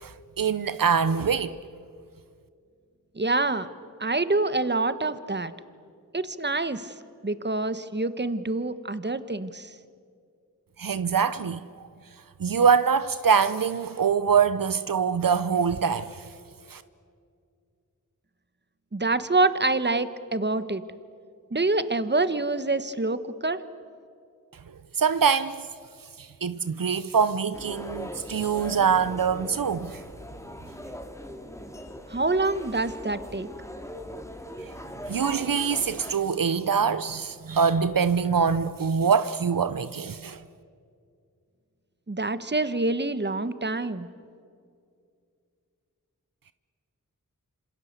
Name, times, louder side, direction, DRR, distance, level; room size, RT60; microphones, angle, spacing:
voice 1, 0.0-1.6 10.8-11.6 12.4-16.2 16.7-16.8 25.0-25.6 26.2-30.0 35.1-40.4, right 6 dB, 75° right, 0.8 m, -24 dB
voice 2, 3.1-3.7 4.0-5.5 6.1-6.9 7.2-9.7 18.9-20.8 21.5-23.6 32.1-33.5 42.1-44.1, right 2 dB, 30° right, 1.4 m, -26 dB
sound 1, 27.5-36.1, equal, 10° left, 2.8 m, -40 dB
27.0 x 26.5 x 8.2 m
wide cardioid pair, 45°, 34 cm